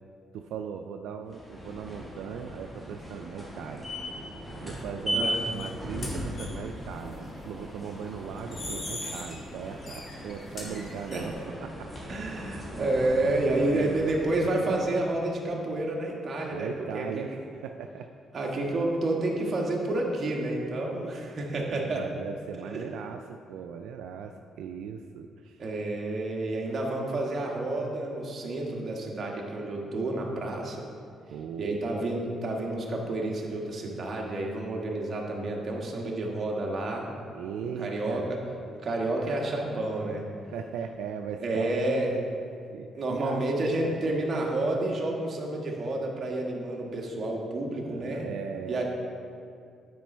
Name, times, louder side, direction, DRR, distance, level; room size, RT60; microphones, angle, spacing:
voice 1, 0.3-3.9 4.6-11.3 11.6-12.6 13.0-14.1 14.6-14.8 16.5-18.1 21.5-25.6 26.7-26.8 31.3-31.8 37.3-38.3 40.5-42.2 42.7-43.4 43.7-44.1 47.9-48.8, right 7 dB, 85° right, 5 dB, 0.3 m, -39 dB
sound 1, 1.3-14.8, equal, 10° left, 1.9 m, -38 dB
sound 2, 5.6-5.7 6.0-6.5 8.4-9.4 9.8-11.2, left 2 dB, 45° left, 1.8 m, -39 dB
voice 2, 12.1-17.2 18.3-22.0 22.6-22.8 25.6-30.9 31.6-37.1 37.6-38.2 38.8-40.2 41.4-42.1 42.9-48.3 48.7-48.8, right 2 dB, 45° right, -1 dB, 1.5 m, -30 dB
9.3 x 5.1 x 4.4 m, 2.4 s
cardioid pair, 90°, 0 cm